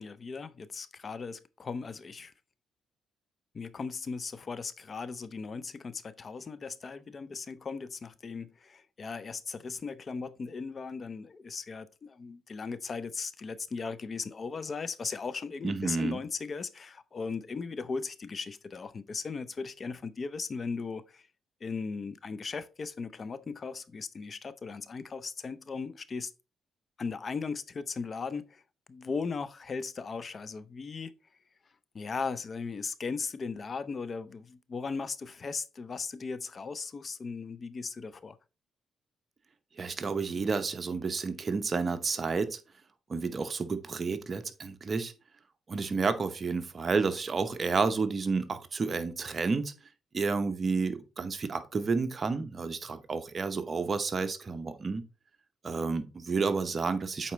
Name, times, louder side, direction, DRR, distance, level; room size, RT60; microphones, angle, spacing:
voice 1, 0.0-2.3 3.5-21.3 21.6-26.3 27.0-28.6 28.9-31.1 31.9-38.4, left 4 dB, 40° left, 0.5 m, -37 dB
voice 2, 15.6-16.2 39.8-42.6 43.1-45.1 45.7-49.7 50.1-55.0 55.6-57.3, right 4 dB, 40° right, 0.8 m, -30 dB
8.2 x 4.1 x 3.1 m
cardioid pair, 90°, 0 cm